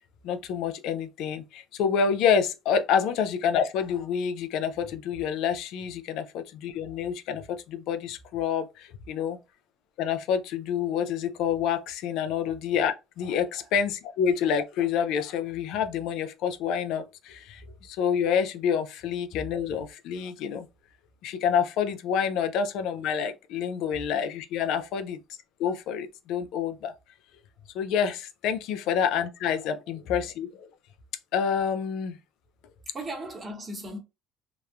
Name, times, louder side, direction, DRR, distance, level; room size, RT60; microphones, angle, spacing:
voice 1, 0.2-9.4 10.0-20.7 21.2-25.2 25.6-26.9 27.7-30.7 31.3-32.2, left 7 dB, 70° left, 0.4 m, -28 dB
voice 2, 32.9-34.0, right 1 dB, 30° right, 0.9 m, -38 dB
2.9 x 2.0 x 2.3 m
supercardioid pair, 80°, 0 cm